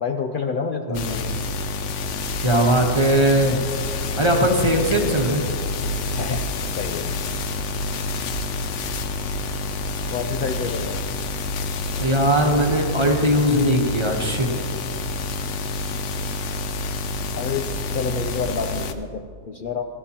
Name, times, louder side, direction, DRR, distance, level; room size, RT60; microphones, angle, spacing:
voice 1, 0.0-1.1 6.2-6.5 6.8-7.1 10.1-11.0 17.3-17.7 17.9-19.8, left 5 dB, 90° left, 5 dB, 0.4 m, -28 dB
sound 1, 0.9-18.9, left 3 dB, 65° left, 0.9 m, -28 dB
voice 2, 0.9-1.3 2.4-3.6 4.2-5.4 12.0-14.5, right 1 dB, 20° right, 1 dB, 1.0 m, -20 dB
16.0 x 13.0 x 2.9 m, 2.1 s
omnidirectional pair, 1.5 m